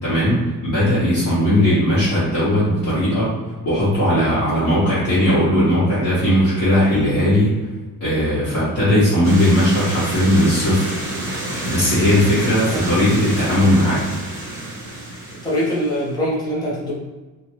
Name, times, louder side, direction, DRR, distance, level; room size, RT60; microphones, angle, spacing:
voice 1, 0.0-3.3 3.6-7.6 8.0-10.9 11.6-14.0, equal, 40° left, -13 dB, 1.0 m, -18 dB
sound 1, 9.2-16.1, right 1 dB, 30° right, 0.9 m, -28 dB
voice 2, 15.4-16.9, equal, 10° left, -7 dB, 0.6 m, -23 dB
2.7 x 2.2 x 2.9 m, 1.2 s
cardioid pair, 180°, 37 cm